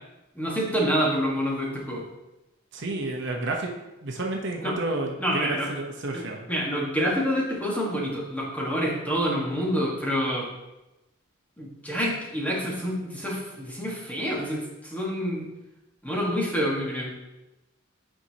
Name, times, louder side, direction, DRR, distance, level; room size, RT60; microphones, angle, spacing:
voice 1, 0.3-2.0 4.6-4.8 5.2-5.7 6.1-10.5 11.6-15.5 16.0-17.1, equal, 5° left, -4 dB, 1.5 m, -27 dB
voice 2, 2.7-3.7 4.0-6.5, right 2 dB, 55° right, 1 dB, 0.8 m, -30 dB
8.9 x 5.4 x 2.8 m, 0.98 s
head